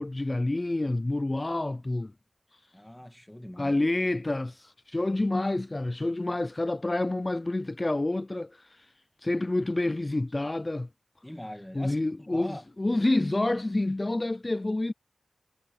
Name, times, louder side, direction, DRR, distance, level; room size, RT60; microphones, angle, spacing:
voice 1, 0.0-2.1 2.5-2.6 3.6-8.9 9.2-10.9 11.7-14.9, left 2 dB, 25° left, 0.4 m, -28 dB
voice 2, 2.7-3.8 11.2-12.6, left 1 dB, 10° left, 2.1 m, -42 dB
wide cardioid pair, 80°, 0 cm